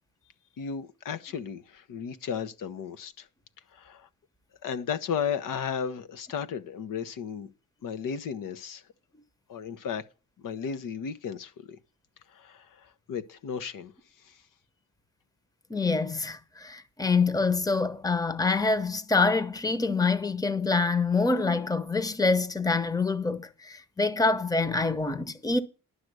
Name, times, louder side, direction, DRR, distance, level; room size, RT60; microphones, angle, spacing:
voice 1, 0.6-3.3 3.7-4.1 4.6-7.5 7.8-8.8 9.5-10.0 10.4-11.8 12.3-13.9 14.2-14.4, left 7 dB, 85° left, 1.1 m, -34 dB
voice 2, 15.7-25.6, left 3 dB, 10° left, 0.9 m, -26 dB
11.5 x 6.6 x 6.2 m
cardioid pair, 120°, 32 cm